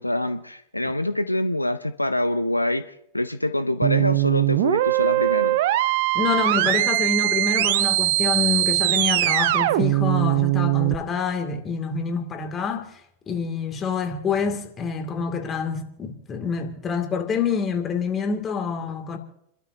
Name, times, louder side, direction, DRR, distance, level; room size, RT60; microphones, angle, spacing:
voice 1, 0.0-5.6, left 1 dB, 85° left, 0.5 m, -25 dB
sound 1, 3.8-11.0, right 17 dB, 50° right, 0.6 m, -21 dB
voice 2, 6.1-19.2, left 6 dB, 25° left, 2.4 m, -27 dB
29.5 x 12.5 x 2.8 m
figure-of-eight pair, 90°, 0 cm